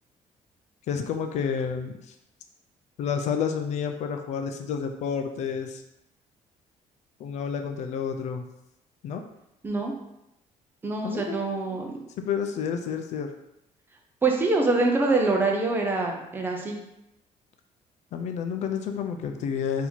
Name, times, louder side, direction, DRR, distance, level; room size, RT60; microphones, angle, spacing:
voice 1, 0.9-1.9 3.0-5.8 7.2-8.4 9.0-9.2 11.0-11.8 12.2-13.3 18.1-19.9, left 7 dB, 60° left, 6 dB, 0.4 m, -30 dB
voice 2, 10.8-11.9 14.2-16.8, right 3 dB, 15° right, 1 dB, 0.6 m, -25 dB
4.0 x 2.8 x 4.4 m, 0.85 s
cardioid pair, 175°, 14 cm